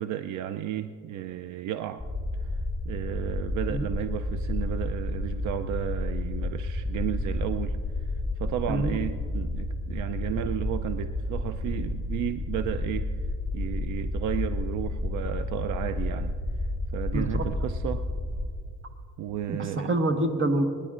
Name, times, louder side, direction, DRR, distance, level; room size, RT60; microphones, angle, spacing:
voice 1, 0.0-2.0 2.4-2.6 2.8-8.1 8.4-13.1 13.5-16.4 16.9-18.1 19.2-20.0, right 11 dB, 75° right, 9 dB, 0.5 m, -33 dB
sound 1, 2.0-18.5, left 2 dB, 15° right, 3.0 m, -31 dB
voice 2, 17.1-17.4 19.5-20.6, right 1 dB, 45° right, 6 dB, 1.3 m, -26 dB
25.0 x 10.0 x 2.5 m, 2.3 s
cardioid pair, 90°, 30 cm